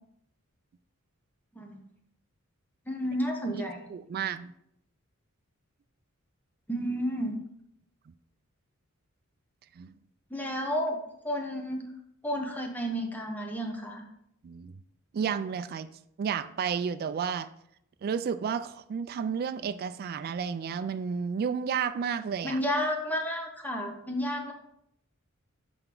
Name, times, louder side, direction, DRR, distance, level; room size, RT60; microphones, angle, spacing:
voice 1, 2.9-3.8 6.7-7.4 10.3-11.0 11.2-11.8 12.2-14.0 22.4-24.5, equal, 10° left, 2 dB, 1.0 m, -31 dB
voice 2, 3.9-4.5 8.1-8.2 9.8-9.9 14.4-14.7 15.1-15.9 16.2-17.5 18.0-22.6, right 6 dB, 45° right, 11 dB, 0.3 m, -31 dB
7.8 x 4.4 x 3.8 m, 0.75 s
head